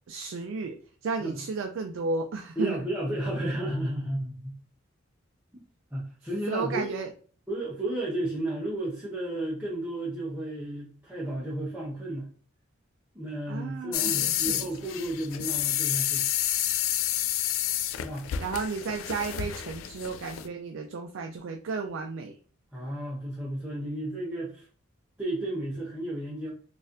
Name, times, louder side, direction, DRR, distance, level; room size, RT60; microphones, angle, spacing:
voice 1, 0.1-0.8 1.0-2.9 6.5-7.1 13.5-14.7 18.4-22.4, right 4 dB, 70° right, 5 dB, 0.4 m, -33 dB
voice 2, 2.6-4.6 5.5-5.6 5.9-6.9 7.5-12.3 13.1-16.3 18.0-18.3 22.7-24.7 25.2-26.5, right 1 dB, 10° right, -7 dB, 0.7 m, -33 dB
sound 1, 13.9-20.5, left 12 dB, 80° left, 0.3 m, -29 dB
4.0 x 2.5 x 2.5 m, 0.43 s
head